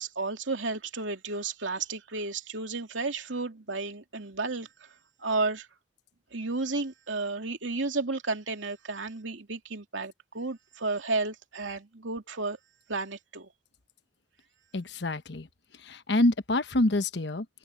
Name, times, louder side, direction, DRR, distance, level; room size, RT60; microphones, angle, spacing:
voice 1, 0.0-4.9 5.2-5.7 6.3-12.6 12.9-13.5, right 3 dB, 90° right, 2.7 m, -32 dB
voice 2, 14.7-15.5 15.8-17.5, left 1 dB, 65° left, 1.1 m, -26 dB
head